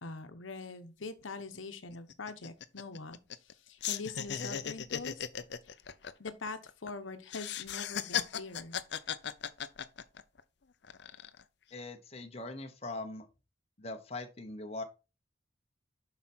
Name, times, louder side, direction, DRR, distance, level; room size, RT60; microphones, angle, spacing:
voice 1, 0.0-5.3 6.2-8.8, left 3 dB, 85° left, 1.0 m, -43 dB
sound 1, 1.0-1.1 1.4-1.6 1.9-3.5 3.8-6.9 7.3-10.4 10.8-11.4, left 8 dB, 60° left, 0.6 m, -37 dB
voice 2, 11.7-13.3 13.8-14.8, left 2 dB, 30° left, 1.1 m, -41 dB
7.5 x 5.7 x 4.4 m
head